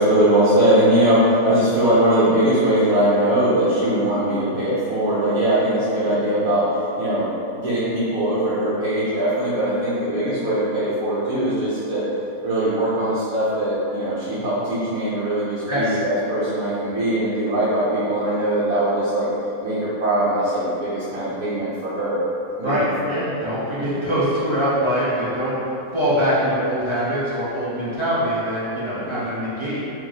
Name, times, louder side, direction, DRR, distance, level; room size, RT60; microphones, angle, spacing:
voice 1, 0.0-12.0 12.4-19.3 19.6-22.2 22.6-23.2 23.7-23.8 28.9-29.2, right 1 dB, 60° right, -11 dB, 1.2 m, -21 dB
voice 2, 15.7-16.0 22.6-29.8, equal, 30° right, -11 dB, 0.5 m, -23 dB
3.1 x 2.9 x 3.9 m, 2.7 s
omnidirectional pair, 1.8 m